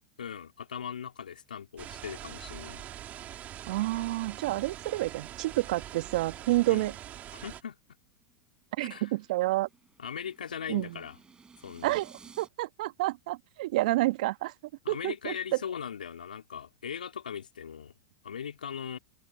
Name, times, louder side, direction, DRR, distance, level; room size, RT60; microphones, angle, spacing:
voice 1, 0.2-2.8 6.7-6.9 7.3-7.8 8.8-9.1 10.0-11.2 11.6-12.0 14.8-17.9 18.2-19.0, left 8 dB, 80° left, 3.5 m, -39 dB
sound 1, 1.8-7.6, right 12 dB, 35° right, 3.8 m, -44 dB
voice 2, 3.7-6.9 8.8-9.7 10.7-11.0 11.8-14.5 14.9-15.3, right 18 dB, 60° right, 1.5 m, -29 dB
sound 2, 8.2-12.5, right 5 dB, 20° right, 5.8 m, -57 dB
hypercardioid pair, 95°, 5 cm